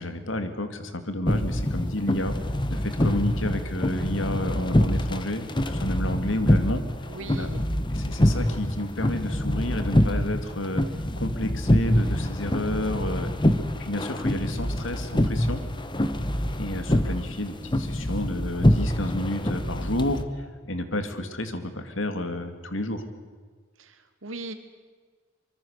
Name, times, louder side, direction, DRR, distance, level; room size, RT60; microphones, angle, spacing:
voice 1, 0.0-2.4 2.7-6.8 7.3-7.5 7.9-10.8 11.2-13.3 13.8-15.6 16.6-23.0, left 1 dB, 70° left, 8 dB, 2.4 m, -31 dB
sound 1, 1.3-20.2, left 1 dB, 25° left, 1.3 m, -25 dB
voice 2, 7.1-7.6 23.8-24.5, right 3 dB, 80° right, 8 dB, 2.3 m, -39 dB
24.5 x 24.0 x 6.6 m, 1.5 s
head